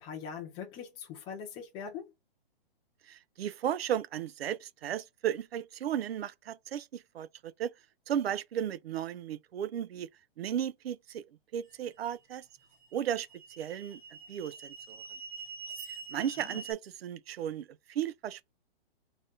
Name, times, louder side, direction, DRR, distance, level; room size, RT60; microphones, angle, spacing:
voice 1, 0.0-2.1 16.4-16.6, left 7 dB, 15° left, 0.8 m, -42 dB
voice 2, 3.0-7.7 8.1-10.1 10.4-11.2 11.5-12.5 12.9-13.3 13.6-14.0 14.3-15.0 15.9-18.5, right 10 dB, 80° right, 0.5 m, -35 dB
sound 1, 11.7-11.8 12.6-16.7, right 4 dB, 15° right, 0.7 m, -45 dB
4.0 x 2.5 x 3.7 m
hypercardioid pair, 165°, 30 cm